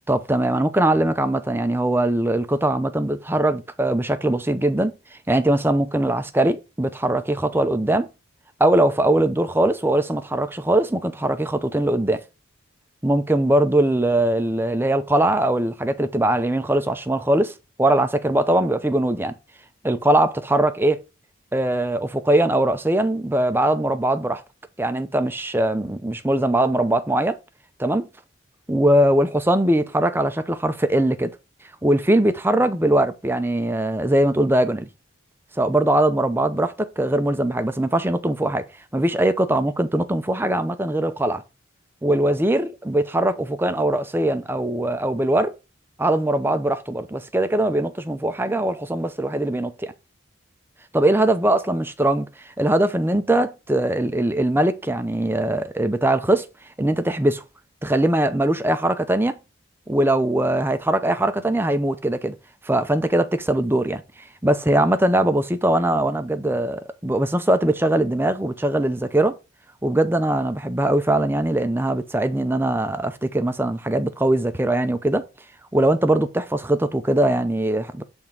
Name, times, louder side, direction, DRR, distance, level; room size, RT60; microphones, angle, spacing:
voice 1, 0.1-4.9 5.3-8.1 8.6-12.2 13.0-19.3 19.8-21.0 21.5-24.4 24.8-27.4 27.8-28.1 28.7-31.3 31.8-34.9 35.6-38.6 38.9-41.4 42.0-45.5 46.0-49.9 50.9-56.5 56.8-57.4 57.8-59.4 59.9-62.4 62.6-64.0 64.4-69.4 69.8-75.2 75.7-78.0, right 1 dB, 10° right, 0.6 m, -21 dB
7.0 x 3.6 x 5.7 m
head